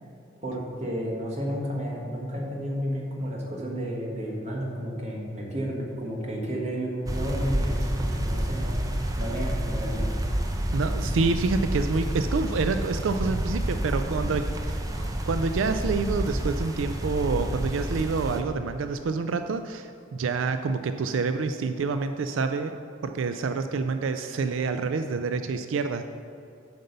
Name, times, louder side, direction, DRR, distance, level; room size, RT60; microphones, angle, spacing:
voice 1, 0.4-8.8 9.2-10.1, equal, 35° right, -1 dB, 1.4 m, -31 dB
sound 1, 7.1-18.4, right 1 dB, 20° right, 0.5 m, -29 dB
voice 2, 10.7-22.8 23.0-26.0, right 4 dB, 90° right, 8 dB, 0.4 m, -27 dB
7.9 x 5.3 x 6.7 m, 2.5 s
head